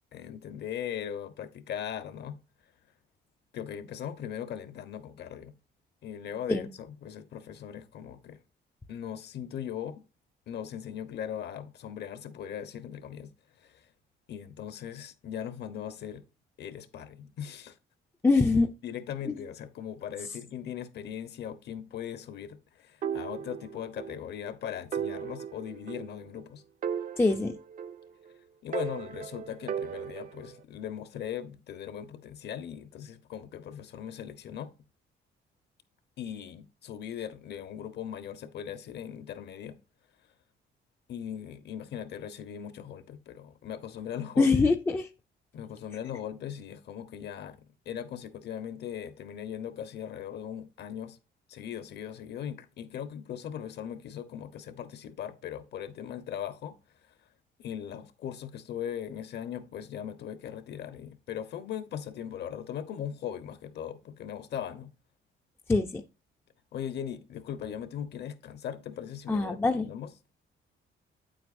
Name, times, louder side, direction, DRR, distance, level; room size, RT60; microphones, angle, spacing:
voice 1, 0.1-2.4 3.5-5.5 6.0-8.4 8.9-10.0 10.5-13.3 13.6-13.9 14.3-16.2 16.6-17.8 18.8-26.6 28.6-34.7 36.2-39.8 41.1-44.5 45.5-51.2 51.5-56.7 57.6-64.9 66.7-70.1, left 9 dB, 60° left, 1.0 m, -39 dB
voice 2, 18.2-18.7 19.3-19.4 27.2-27.6 44.4-45.1 65.7-66.0 69.3-69.9, left 3 dB, 10° left, 0.4 m, -24 dB
sound 1, 23.0-24.2 24.5-24.6 24.9-26.4 26.8-28.3 28.7-30.6, right 8 dB, 45° right, 0.5 m, -36 dB
9.1 x 7.8 x 2.6 m
cardioid pair, 155°, 20 cm